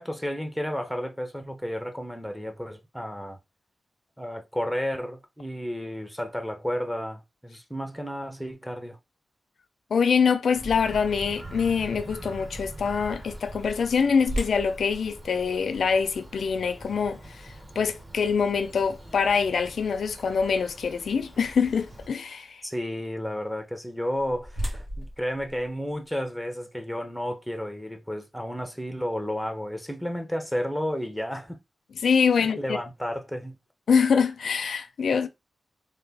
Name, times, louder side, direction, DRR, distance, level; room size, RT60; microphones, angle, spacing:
voice 1, 0.0-3.4 4.2-9.0 22.6-31.6 32.4-33.6, equal, ahead, 0.5 m, -32 dB
voice 2, 9.9-22.6 31.9-32.8 33.9-35.3, left 6 dB, 80° left, 0.4 m, -24 dB
Bird vocalization bird call bird song, 10.5-22.1, right 1 dB, 30° right, 0.9 m, -43 dB
sound 1, 14.3-20.2 20.8-20.9 21.5-21.7 23.8-26.4, equal, 70° right, 1.2 m, -38 dB
3.3 x 2.2 x 3.3 m
wide cardioid pair, 130°, 0 cm